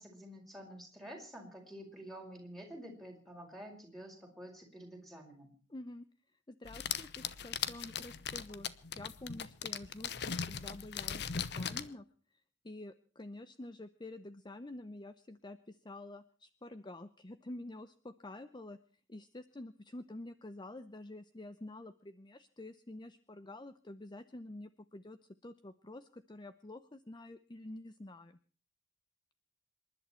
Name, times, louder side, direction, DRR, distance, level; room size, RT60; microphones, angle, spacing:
voice 1, 0.0-5.5, equal, ahead, 1 dB, 5.2 m, -49 dB
voice 2, 5.7-6.1 6.5-8.7 9.0-12.1 12.6-18.8 19.1-28.4, left 1 dB, 25° left, 12 dB, 0.7 m, -48 dB
sound 1, 6.7-11.9, left 7 dB, 60° left, 0.9 m, -39 dB
27.5 x 11.0 x 4.4 m, 0.42 s
head